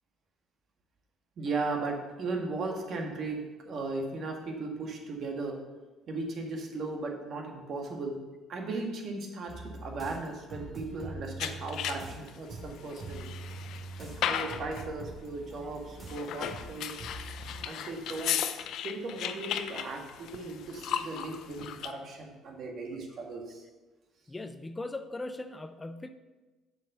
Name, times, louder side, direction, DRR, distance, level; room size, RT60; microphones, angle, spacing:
voice 1, 1.4-5.6 6.1-8.2 8.5-13.3 14.0-17.0 17.6-23.6, right 3 dB, 55° right, 2 dB, 1.8 m, -37 dB
sound 1, 9.5-17.6, right 2 dB, 35° right, 2.7 m, -44 dB
sound 2, 11.4-12.3 12.8-14.9 16.0-21.9, left 9 dB, 70° left, 0.6 m, -36 dB
voice 2, 24.3-26.1, left 2 dB, 20° left, 9 dB, 0.6 m, -39 dB
7.4 x 5.5 x 6.8 m, 1.2 s
supercardioid pair, 75°, 0 cm